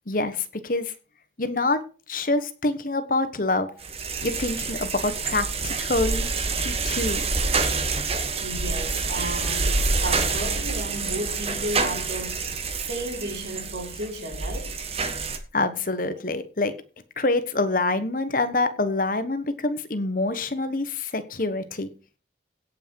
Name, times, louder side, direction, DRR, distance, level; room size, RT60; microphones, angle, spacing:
voice 1, 0.1-0.9 1.4-1.8 2.1-3.7 4.2-6.3 6.6-7.2 15.5-16.7 17.2-21.9, left 2 dB, 50° left, 1.3 m, -26 dB
sound 1, 3.8-15.4, right 4 dB, 35° right, 1.4 m, -27 dB
voice 2, 8.4-14.8, right 1 dB, 75° right, 3.2 m, -33 dB
16.5 x 6.0 x 4.7 m
head